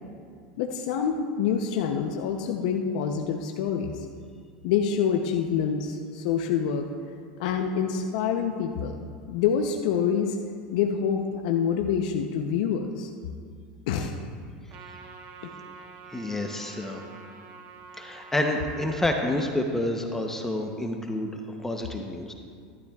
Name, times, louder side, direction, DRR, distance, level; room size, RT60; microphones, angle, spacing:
voice 1, 0.6-4.1 4.6-6.9 7.4-9.0 9.3-10.4 10.7-13.1 13.9-14.1 15.4-15.5, left 7 dB, 70° left, 3 dB, 0.7 m, -26 dB
Trumpet, 14.7-19.4, right 5 dB, 55° right, 1.2 m, -47 dB
voice 2, 16.1-17.0 18.0-22.3, left 1 dB, 10° left, 3 dB, 0.8 m, -29 dB
15.0 x 12.0 x 2.4 m, 2.1 s
supercardioid pair, 120°, 4 cm